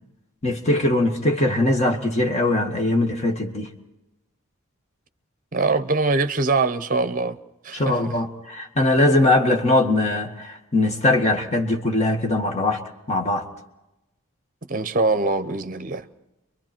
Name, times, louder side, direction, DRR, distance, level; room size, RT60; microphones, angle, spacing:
voice 1, 0.4-3.7 7.7-12.8 13.1-13.5, left 2 dB, 30° left, 2.0 m, -21 dB
voice 2, 5.5-7.4 7.6-8.1 14.7-16.1, right 3 dB, 35° right, 0.8 m, -23 dB
30.0 x 24.0 x 4.5 m
head